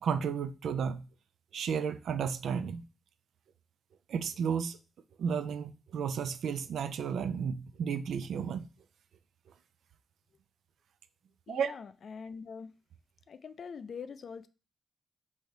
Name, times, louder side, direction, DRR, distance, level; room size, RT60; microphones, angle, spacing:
voice 1, 0.0-1.1 1.5-2.9 4.1-4.8 5.2-8.7 11.5-11.7, right 7 dB, 75° right, 0.3 m, -33 dB
voice 2, 11.5-12.7 13.3-14.5, left 6 dB, 60° left, 0.4 m, -43 dB
3.3 x 2.7 x 4.4 m
supercardioid pair, 55°, 0 cm